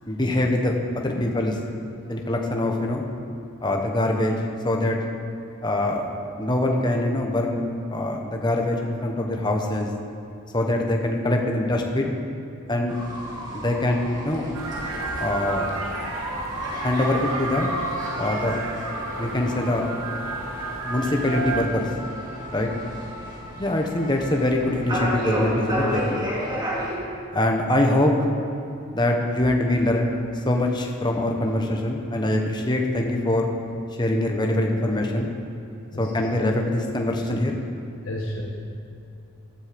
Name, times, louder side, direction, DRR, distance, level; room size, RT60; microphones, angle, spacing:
voice 1, 0.1-1.5 2.1-3.1 3.6-5.0 5.6-6.1 6.4-9.9 10.5-12.1 12.7-12.9 13.5-14.5 15.2-15.7 16.8-17.7 18.2-18.6 19.2-19.8 20.9-21.9 22.5-22.7 23.6-26.3 27.3-28.1 28.9-30.1 30.4-33.5 34.0-35.3 36.0-37.6, left 1 dB, 20° left, 1 dB, 1.3 m, -23 dB
sound 1, 12.9-26.9, equal, 20° right, 2.5 m, -32 dB
sound 2, 14.5-21.6, right 3 dB, 75° right, 2.0 m, -32 dB
voice 2, 38.0-38.4, left 1 dB, 70° left, -3 dB, 1.5 m, -35 dB
15.5 x 11.5 x 5.3 m, 2.7 s
head